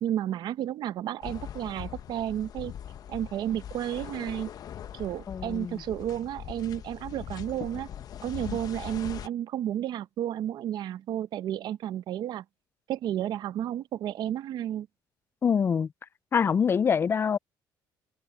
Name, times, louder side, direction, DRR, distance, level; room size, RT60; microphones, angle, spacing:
voice 1, 0.0-2.7 3.1-4.5 4.9-7.9 8.2-12.4 12.9-14.9, right 11 dB, 65° right, 0.8 m, -32 dB
sound 1, 1.2-9.3, left 10 dB, 55° left, 0.9 m, -41 dB
voice 2, 5.3-5.8 8.5-8.6 15.4-15.9 16.3-17.4, left 6 dB, 30° left, 0.3 m, -25 dB
cardioid pair, 125°, 8 cm